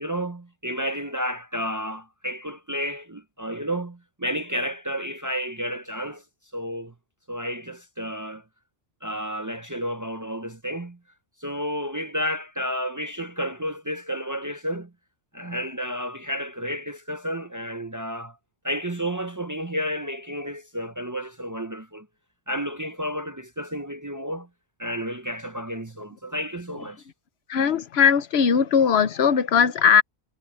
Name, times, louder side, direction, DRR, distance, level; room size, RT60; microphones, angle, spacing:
voice 1, 0.0-6.2 6.5-6.9 7.3-8.4 9.0-11.0 11.4-14.9 15.3-18.4 18.6-22.1 22.5-24.5 24.8-27.0, equal, 20° right, 0.6 m, -31 dB
voice 2, 27.5-30.0, left 7 dB, 75° left, 1.1 m, -19 dB
omnidirectional pair, 1.1 m